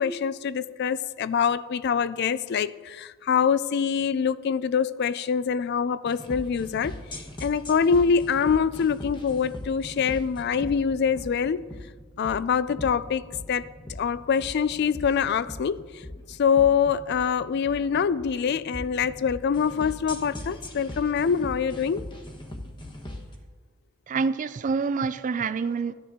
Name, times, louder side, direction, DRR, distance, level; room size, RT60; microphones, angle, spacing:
voice 1, 0.0-6.9 7.4-11.6 12.2-13.2 13.5-13.6 14.0-15.9 16.4-22.1, left 6 dB, 50° left, 0.3 m, -24 dB
sound 1, 6.1-23.3, left 1 dB, 20° left, 1.0 m, -40 dB
voice 2, 24.1-25.9, right 5 dB, 35° right, 0.3 m, -27 dB
13.5 x 10.0 x 3.7 m
head